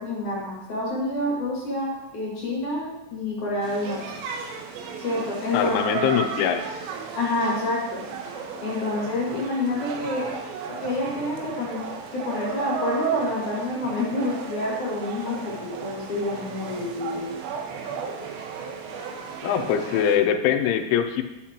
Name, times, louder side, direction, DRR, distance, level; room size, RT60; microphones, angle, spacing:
voice 1, 0.0-4.0 5.0-5.7 7.1-8.0 8.6-10.3 10.8-11.9 12.1-17.3, left 2 dB, 50° left, -5 dB, 2.8 m, -28 dB
sound 1, 3.6-20.2, right 6 dB, 80° right, 3.0 m, -34 dB
voice 2, 5.5-6.6 19.4-21.2, left 9 dB, 90° left, 6 dB, 3.1 m, -22 dB
10.0 x 8.1 x 2.9 m, 0.95 s
omnidirectional pair, 5.3 m